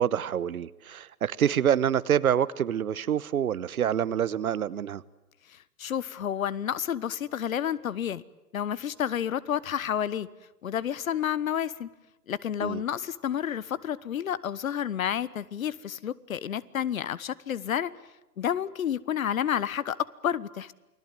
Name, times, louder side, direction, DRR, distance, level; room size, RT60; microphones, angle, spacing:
voice 1, 0.0-5.0 12.6-12.8, right 9 dB, 65° right, 18 dB, 1.1 m, -26 dB
voice 2, 5.5-8.2 8.5-10.3 10.6-11.9 12.3-17.9 18.4-20.7, left 9 dB, 60° left, 19 dB, 1.3 m, -30 dB
29.0 x 20.5 x 9.2 m, 0.98 s
hypercardioid pair, 130°, 46 cm